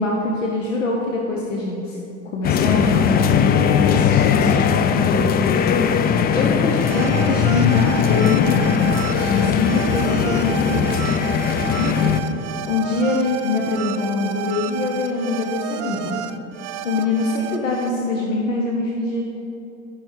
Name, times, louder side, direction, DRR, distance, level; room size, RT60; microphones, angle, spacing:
voice 1, 0.0-2.0 2.3-5.3 6.3-8.9 9.2-11.1 11.8-12.2 12.7-16.2 16.8-19.2, left 2 dB, 85° left, -1 dB, 0.9 m, -24 dB
sound 1, 2.4-12.2, left 7 dB, 25° left, 0.4 m, -19 dB
sound 2, 6.8-17.9, right 10 dB, 70° right, 0.5 m, -31 dB
11.5 x 5.2 x 4.6 m, 2.8 s
hypercardioid pair, 75°, 37 cm